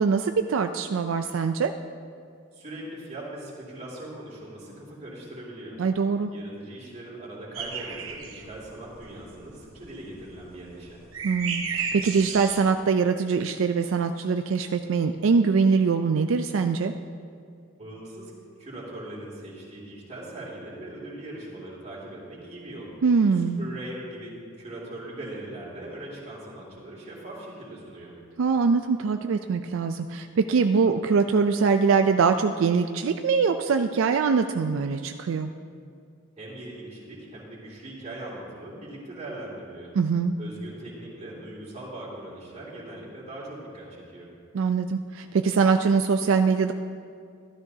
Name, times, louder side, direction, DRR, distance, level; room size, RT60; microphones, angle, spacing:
voice 1, 0.0-1.7 5.8-6.3 11.2-16.9 23.0-23.6 28.4-35.5 40.0-40.3 44.5-46.7, right 5 dB, 75° right, 7 dB, 0.4 m, -23 dB
voice 2, 2.5-5.8 6.3-11.0 17.8-18.3 18.6-22.9 23.3-28.1 36.4-39.9 40.4-44.3, right 1 dB, 35° right, -6 dB, 2.5 m, -40 dB
sound 1, 7.5-12.6, right 6 dB, 90° right, 1.0 m, -34 dB
13.0 x 12.5 x 2.8 m, 2.3 s
head